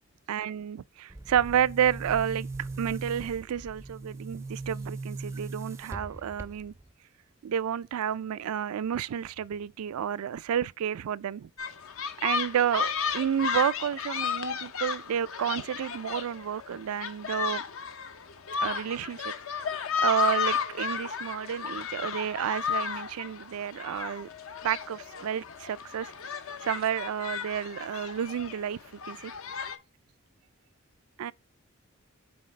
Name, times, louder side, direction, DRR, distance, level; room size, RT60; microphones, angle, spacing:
voice 1, 0.3-6.7 7.4-11.5 12.2-17.6 18.6-24.3 24.6-26.1 26.6-28.8 29.1-29.3 31.2-31.3, right 9 dB, 80° right, 0.3 m, -30 dB
Boom, 1.1-6.9, right 3 dB, 10° right, 0.4 m, -39 dB
sound 1, 11.6-29.8, left 6 dB, 70° left, 0.7 m, -33 dB
7.8 x 4.2 x 3.2 m
head